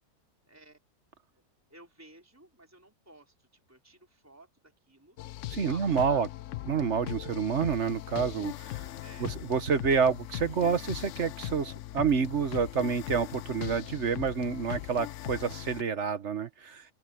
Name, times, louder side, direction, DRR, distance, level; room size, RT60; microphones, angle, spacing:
voice 1, 0.4-0.8 1.3-1.4 1.7-5.2 5.6-6.3 9.0-9.4, right 2 dB, 10° right, 4.3 m, -54 dB
sound 1, 5.2-15.8, left 14 dB, 65° left, 0.8 m, -40 dB
voice 2, 5.5-6.3 6.7-8.8 9.2-16.8, right 6 dB, 50° right, 1.4 m, -28 dB
open air
omnidirectional pair, 1.6 m